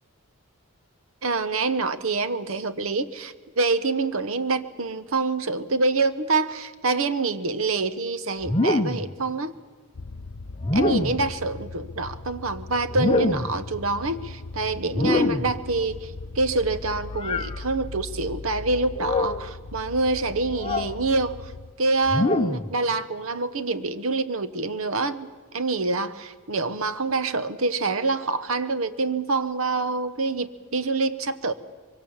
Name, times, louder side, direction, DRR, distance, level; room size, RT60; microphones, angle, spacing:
voice 1, 1.2-9.5 10.7-21.5 21.8-31.5, right 3 dB, 65° right, 13 dB, 1.0 m, -26 dB
sound 1, 8.4-9.1 10.6-11.3 12.9-13.6 14.9-15.6 17.2-17.5 19.0-19.4 20.6-21.0 22.1-22.7, left 2 dB, 25° left, 0.7 m, -24 dB
sound 2, 9.9-21.7, left 3 dB, 65° left, 0.7 m, -39 dB
24.0 x 23.5 x 7.2 m, 1.4 s
head